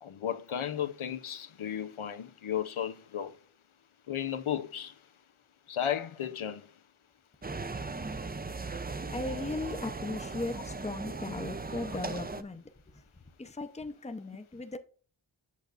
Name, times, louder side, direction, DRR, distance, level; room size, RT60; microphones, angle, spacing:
voice 1, 0.0-3.3 4.1-4.9 5.7-6.7, left 9 dB, 90° left, 0.7 m, -34 dB
sound 1, 7.4-12.4, right 3 dB, 20° right, 0.5 m, -38 dB
voice 2, 9.1-13.0 13.4-14.8, left 2 dB, 15° left, 0.7 m, -37 dB
8.4 x 6.5 x 2.5 m
wide cardioid pair, 65°, 48 cm